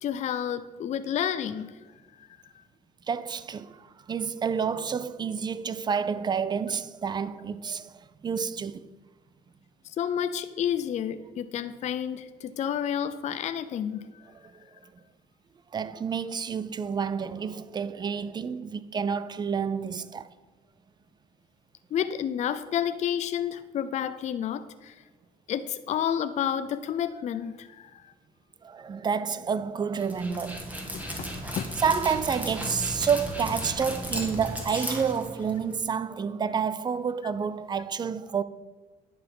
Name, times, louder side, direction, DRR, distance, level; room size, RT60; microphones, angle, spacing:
voice 1, 0.0-1.7 2.2-2.3 9.8-14.2 21.9-25.0 25.5-28.1 30.9-31.3 31.6-31.8, left 9 dB, 45° left, 0.4 m, -30 dB
voice 2, 3.1-8.8 14.3-14.7 15.7-20.3 28.6-30.8 31.8-38.4, right 6 dB, 25° right, 0.4 m, -29 dB
Dog, 30.0-35.8, equal, 10° right, 1.8 m, -35 dB
10.5 x 5.5 x 5.4 m
cardioid pair, 110°, 17 cm